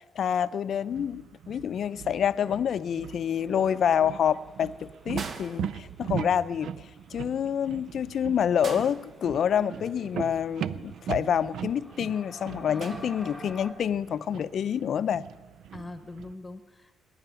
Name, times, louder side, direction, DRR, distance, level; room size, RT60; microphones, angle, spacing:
voice 1, 0.2-6.7 7.1-15.2, left 8 dB, 60° left, 0.5 m, -27 dB
sound 1, 0.8-16.3, right 9 dB, 75° right, 0.4 m, -39 dB
sound 2, 3.2-13.7, equal, 5° right, 2.4 m, -50 dB
sound 3, 5.1-6.4 8.6-9.8 12.8-13.7 15.0-15.2, right 4 dB, 50° right, 1.1 m, -42 dB
voice 2, 15.7-17.0, left 2 dB, 20° left, 1.1 m, -43 dB
20.0 x 10.0 x 6.9 m
cardioid pair, 90°, 0 cm